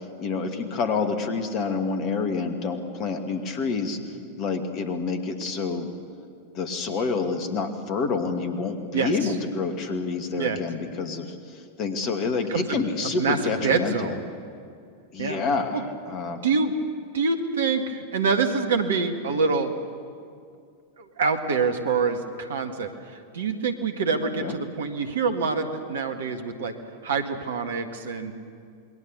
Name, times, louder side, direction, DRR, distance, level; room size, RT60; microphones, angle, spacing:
voice 1, 0.2-4.0 4.4-5.9 6.5-14.1 15.1-16.4 24.4-24.6, left 4 dB, 35° left, 7 dB, 2.4 m, -28 dB
voice 2, 8.9-9.3 10.4-10.6 12.5-12.8 13.2-14.2 15.2-15.4 15.7-15.8 16.3-16.7 17.1-19.8 21.0-26.8 27.0-28.3, right 5 dB, 65° right, 6 dB, 1.9 m, -26 dB
27.5 x 21.5 x 7.0 m, 2.3 s
figure-of-eight pair, 90°, 0 cm